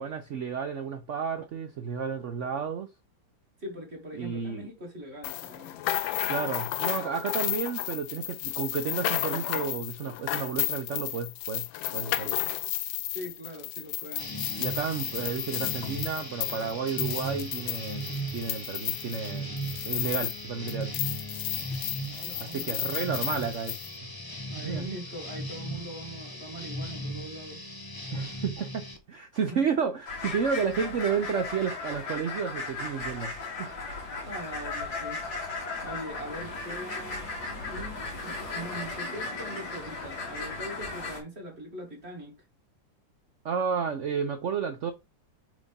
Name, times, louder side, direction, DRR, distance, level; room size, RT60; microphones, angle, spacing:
voice 1, 0.0-2.9 4.2-4.7 6.3-11.7 11.9-12.4 14.6-20.9 22.4-23.8 24.6-24.8 28.1-33.3 33.6-33.7 43.4-44.9, right 6 dB, 80° right, 0.6 m, -31 dB
voice 2, 3.6-5.8 13.0-14.3 22.1-23.1 24.5-27.6 29.5-29.6 34.2-35.2 35.8-37.3 37.6-42.4, right 1 dB, 35° right, 2.2 m, -41 dB
sound 1, 5.2-20.4 20.7-23.9, left 15 dB, 85° left, 1.3 m, -33 dB
sound 2, 14.2-29.0, right 1 dB, 35° left, 0.3 m, -38 dB
sound 3, 30.1-41.2, left 3 dB, 55° left, 2.4 m, -36 dB
4.8 x 4.0 x 5.2 m
omnidirectional pair, 2.1 m